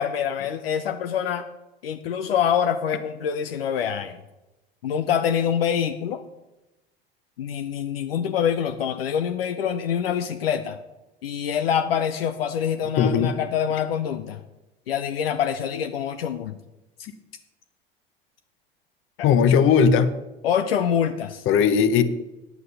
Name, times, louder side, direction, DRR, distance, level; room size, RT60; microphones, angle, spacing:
voice 1, 0.0-1.4 1.8-4.2 4.8-6.2 7.4-10.8 11.2-14.4 14.9-16.6 19.2-19.3 20.4-21.4, left 8 dB, 70° left, 9 dB, 0.7 m, -25 dB
voice 2, 13.0-13.3 19.2-20.1 21.5-22.0, left 7 dB, 45° left, 12 dB, 1.0 m, -18 dB
9.3 x 8.3 x 5.6 m, 0.98 s
figure-of-eight pair, 70°, 30 cm